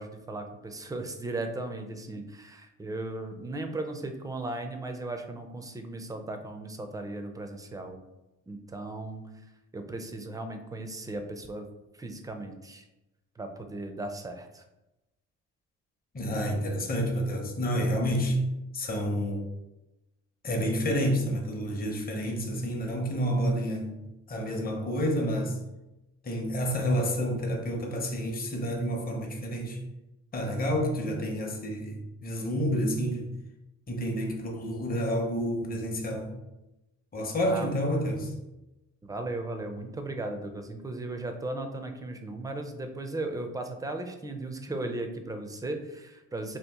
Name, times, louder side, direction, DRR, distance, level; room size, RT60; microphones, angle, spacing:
voice 1, 0.0-8.0 8.5-9.2 9.7-11.7 12.0-12.8 13.4-14.6 37.5-37.7 39.0-46.6, right 2 dB, 10° right, 6 dB, 0.4 m, -36 dB
voice 2, 16.1-18.4 18.7-19.4 20.4-24.0 24.3-25.6 26.2-29.8 30.3-33.3 33.9-36.3 37.1-38.3, equal, 30° left, 1 dB, 0.7 m, -29 dB
2.9 x 2.4 x 3.5 m, 0.98 s
cardioid pair, 90°, 30 cm